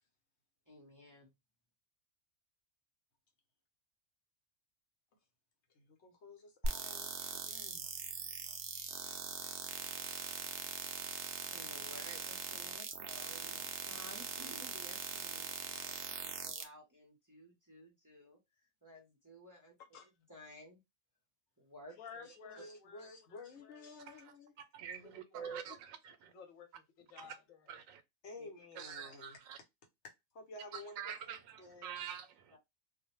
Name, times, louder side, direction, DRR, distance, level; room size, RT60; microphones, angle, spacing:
voice 1, 0.7-1.3 11.5-18.4 18.8-19.8 20.3-20.8 21.6-22.3 28.4-28.5 32.5-32.6, equal, 20° right, 0.6 m, -55 dB
voice 2, 5.7-7.9 22.2-24.5 28.2-29.4 30.0-32.1, left 2 dB, 65° left, 1.0 m, -53 dB
sound 1, 6.6-16.6, right 5 dB, 65° right, 0.6 m, -41 dB
voice 3, 22.0-23.9 25.0-25.6 26.2-27.7, left 6 dB, 80° left, 1.1 m, -55 dB
voice 4, 24.7-26.3 27.2-27.3 27.7-28.0 28.8-29.6 30.7-32.6, right 8 dB, 90° right, 1.0 m, -46 dB
2.4 x 2.1 x 3.0 m
omnidirectional pair, 1.4 m